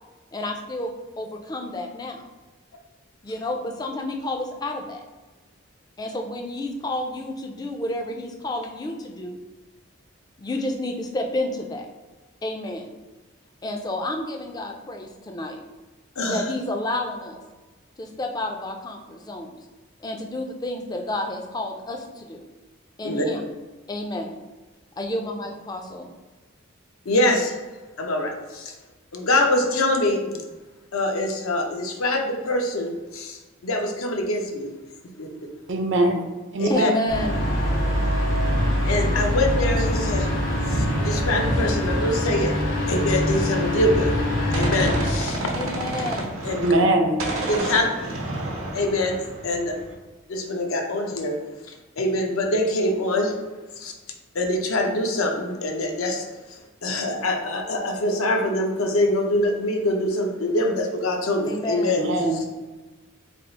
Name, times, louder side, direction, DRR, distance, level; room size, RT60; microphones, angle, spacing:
voice 1, 0.3-2.3 3.2-5.0 6.0-9.4 10.4-11.9 12.4-12.9 13.6-15.6 16.2-17.4 18.0-19.6 20.0-22.4 23.0-23.4 23.9-24.4 25.0-26.1 36.7-37.4 45.5-46.3 61.5-62.0, left 1 dB, 20° left, 3 dB, 0.3 m, -30 dB
voice 2, 16.2-16.5 23.0-23.3 27.1-27.6 28.0-28.7 29.1-30.4 30.9-34.7 35.2-35.5 36.6-36.9 38.8-40.3 40.7-42.5 42.9-44.1 44.5-45.4 46.4-46.7 47.5-47.8 48.7-49.7 50.3-51.3 51.7-53.3 53.8-53.9 54.3-56.2 56.5-62.0 62.3-62.4, left 1 dB, 85° left, 3 dB, 0.6 m, -24 dB
voice 3, 35.7-36.2 36.5-37.2 46.6-47.3 62.0-62.4, right 1 dB, 60° right, 4 dB, 0.5 m, -22 dB
sound 1, 37.1-45.1, left 1 dB, 70° left, 1.2 m, -23 dB
Gunshot gunfire, 44.5-46.9 47.2-49.9, right 1 dB, 85° right, 0.8 m, -30 dB
3.4 x 2.4 x 3.9 m, 1.2 s
head